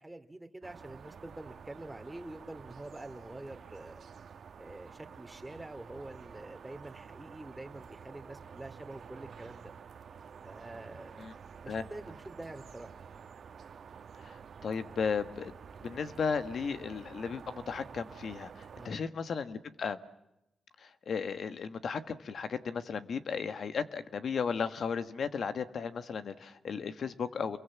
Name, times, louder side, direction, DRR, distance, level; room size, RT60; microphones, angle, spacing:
voice 1, 0.0-4.0 4.6-9.7 10.4-11.3 11.6-12.9 18.8-19.0, right 2 dB, 15° right, 7 dB, 2.5 m, -46 dB
sound 1, 0.6-18.9, right 6 dB, 70° right, 1.4 m, -50 dB
voice 2, 14.2-15.5 15.8-20.0 20.8-27.6, left 6 dB, 70° left, 11 dB, 1.5 m, -35 dB
29.5 x 22.5 x 7.3 m, 0.87 s
cardioid pair, 70°, 0 cm